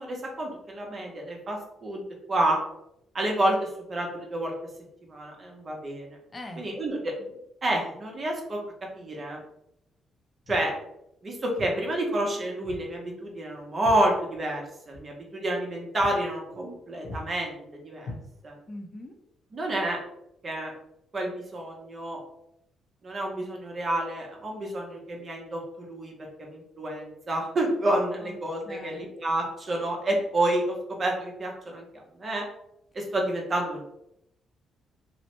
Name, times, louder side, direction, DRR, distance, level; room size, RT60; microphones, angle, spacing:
voice 1, 0.0-2.0 2.3-2.6 3.1-4.5 5.1-6.2 6.6-7.3 7.6-8.6 8.9-9.4 10.5-10.7 11.2-18.1 18.4-18.5 19.5-20.0 20.4-20.7 21.1-22.2 23.0-26.1 26.4-31.8 32.2-32.4 32.9-33.8, right 1 dB, 40° right, 0 dB, 0.8 m, -29 dB
voice 2, 6.3-6.7 18.7-19.2 28.2-28.4 28.7-29.0, left 1 dB, 25° left, 3 dB, 0.6 m, -41 dB
Walk footsteps, 10.4-10.7 11.6-11.8 12.6-12.9 13.2-14.6 14.9-15.1 15.5-15.7 16.0-16.2 16.5-16.8 17.0-17.3 18.0-18.7, left 1 dB, 75° left, 0.9 m, -41 dB
3.0 x 2.1 x 2.9 m, 0.81 s
cardioid pair, 90°, 0 cm